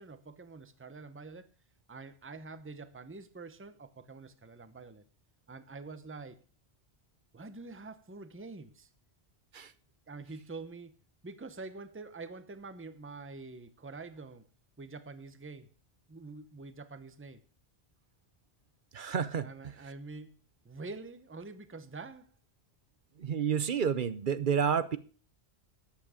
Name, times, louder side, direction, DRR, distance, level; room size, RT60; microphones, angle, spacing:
voice 1, 0.0-1.5 1.9-5.0 5.5-6.4 7.3-8.9 10.1-10.9 11.2-14.5 14.8-15.7 16.1-17.4 19.4-20.4 20.6-22.3, right 3 dB, 15° right, 0.8 m, -46 dB
voice 2, 18.9-19.7 23.2-25.0, right 7 dB, 55° right, 0.8 m, -30 dB
13.0 x 9.0 x 5.0 m
omnidirectional pair, 1.1 m